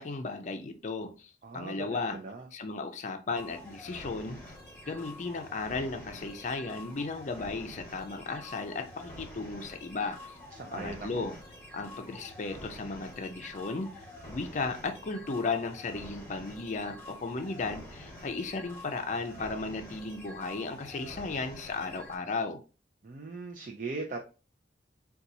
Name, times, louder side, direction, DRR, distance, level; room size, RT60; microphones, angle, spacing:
voice 1, 0.0-2.2 2.5-4.4 4.9-10.3 10.7-11.3 11.7-22.6, left 3 dB, 45° left, 6 dB, 0.5 m, -35 dB
voice 2, 1.4-2.5 10.5-11.3 23.0-24.2, right 3 dB, 50° right, 2 dB, 0.5 m, -39 dB
sound 1, 3.4-22.2, left 1 dB, 15° left, 1.2 m, -47 dB
4.1 x 2.3 x 2.7 m, 0.32 s
head